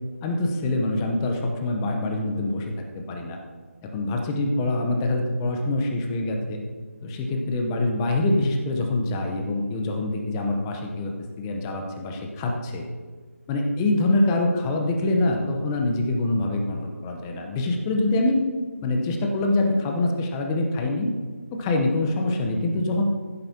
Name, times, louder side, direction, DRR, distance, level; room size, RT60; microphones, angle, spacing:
voice 1, 0.2-3.4 3.9-6.6 7.0-11.1 11.4-12.8 13.5-18.4 18.8-21.1 21.5-23.0, left 2 dB, 15° left, 2 dB, 0.8 m, -25 dB
15.5 x 9.0 x 2.8 m, 1.5 s
figure-of-eight pair, 160°, 8 cm